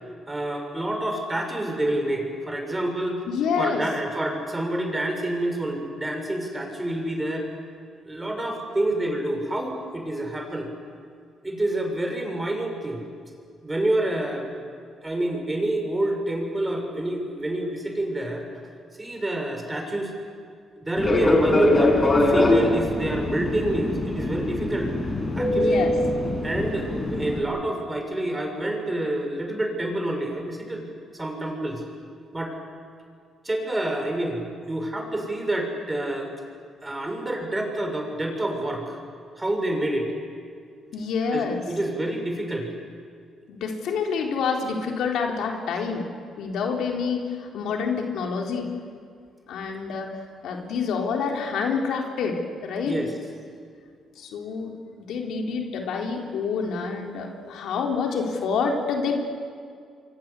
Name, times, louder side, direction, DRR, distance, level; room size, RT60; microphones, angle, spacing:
voice 1, 0.3-3.2 3.6-7.5 8.0-10.7 11.4-13.0 13.6-14.6 15.0-18.5 19.0-20.1 20.8-24.9 25.3-25.9 26.4-30.9 31.1-31.8 32.3-32.6 33.4-36.3 36.8-39.0 39.4-40.1 41.3-42.7 52.8-53.1, right 1 dB, 15° right, 3 dB, 6.5 m, -28 dB
voice 2, 3.3-3.8 25.5-25.9 40.9-41.6 43.5-46.1 46.4-48.7 49.5-50.1 50.4-53.0 54.2-59.2, left 5 dB, 80° left, 1 dB, 3.8 m, -27 dB
Fixed-wing aircraft airplane, 21.0-27.4, left 1 dB, 25° left, 6.4 m, -22 dB
29.0 x 24.0 x 8.4 m, 2.2 s
cardioid pair, 90°, 0 cm